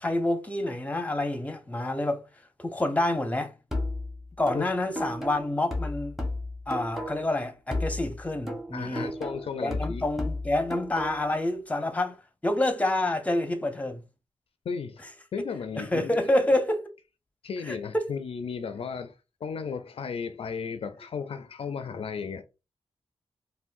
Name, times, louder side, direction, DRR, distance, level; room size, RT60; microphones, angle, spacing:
voice 1, 0.0-2.2 2.6-3.5 4.4-6.1 6.7-9.1 9.6-12.2 12.4-14.0 15.4-15.5 15.8-16.9 17.6-18.1, left 1 dB, 15° left, 0.7 m, -28 dB
sound 1, 3.7-7.4 7.7-11.4, left 1 dB, ahead, 1.0 m, -34 dB
voice 2, 8.7-10.0 14.7-15.0 15.3-16.2 17.4-22.4, left 6 dB, 65° left, 0.4 m, -35 dB
3.5 x 2.2 x 2.5 m
cardioid pair, 55°, 11 cm